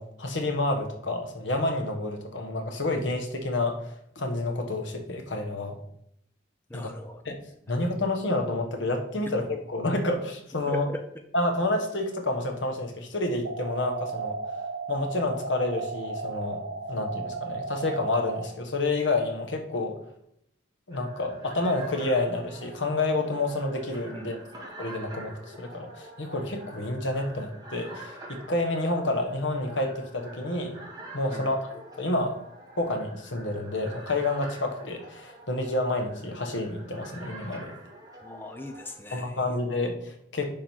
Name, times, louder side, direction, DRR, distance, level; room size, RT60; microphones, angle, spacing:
voice 1, 0.0-3.8 4.1-5.8 6.7-6.9 7.2-7.4 7.7-10.9 11.3-14.4 14.9-16.6 16.9-20.0 20.9-24.4 24.8-30.8 31.1-31.6 32.0-32.4 32.8-37.7 39.1-40.5, left 2 dB, 75° left, 4 dB, 1.3 m, -29 dB
voice 2, 6.7-7.2 10.7-11.0 24.1-24.3 31.3-31.5 38.2-39.6, left 1 dB, 10° left, 5 dB, 0.5 m, -39 dB
sound 1, 13.4-18.4, right 3 dB, 85° right, 1.4 m, -34 dB
sound 2, 20.9-39.0, right 1 dB, 20° right, 1.9 m, -46 dB
10.0 x 3.8 x 4.5 m, 0.72 s
head